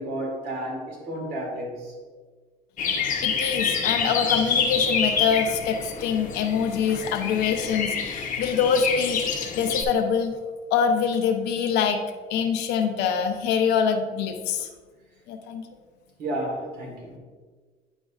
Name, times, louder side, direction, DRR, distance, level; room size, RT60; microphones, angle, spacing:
voice 1, 0.0-1.9 3.9-4.0 16.2-17.2, right 1 dB, 75° right, 1.9 m, -32 dB
sound 1, 2.8-9.8, left 6 dB, 50° left, 0.9 m, -27 dB
voice 2, 3.2-9.2 9.5-10.3 10.7-12.0 12.3-14.7 15.3-15.6, left 7 dB, 90° left, 0.8 m, -24 dB
9.9 x 5.2 x 2.4 m
cardioid pair, 110°, 17 cm